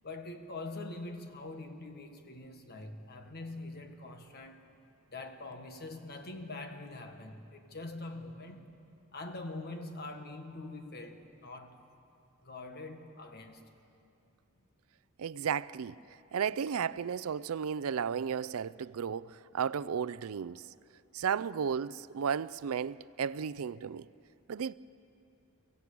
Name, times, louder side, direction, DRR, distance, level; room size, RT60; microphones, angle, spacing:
voice 1, 0.0-4.7 5.1-8.8 9.1-11.7 12.4-13.7, left 2 dB, 50° left, 1.6 m, -44 dB
voice 2, 15.2-16.0 16.3-20.6 21.1-24.1 24.5-24.7, right 7 dB, 75° right, 0.4 m, -34 dB
24.0 x 15.5 x 8.6 m
head